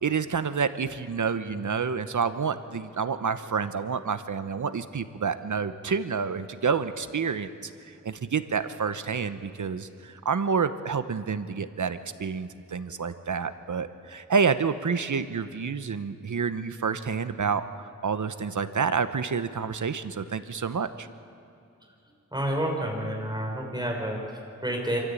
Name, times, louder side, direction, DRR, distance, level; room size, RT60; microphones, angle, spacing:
voice 1, 0.0-21.1, right 5 dB, 75° right, 11 dB, 1.0 m, -29 dB
voice 2, 22.3-25.0, right 1 dB, 15° right, 0 dB, 5.2 m, -29 dB
26.5 x 14.0 x 8.6 m, 2.6 s
wide cardioid pair, 70°, 30 cm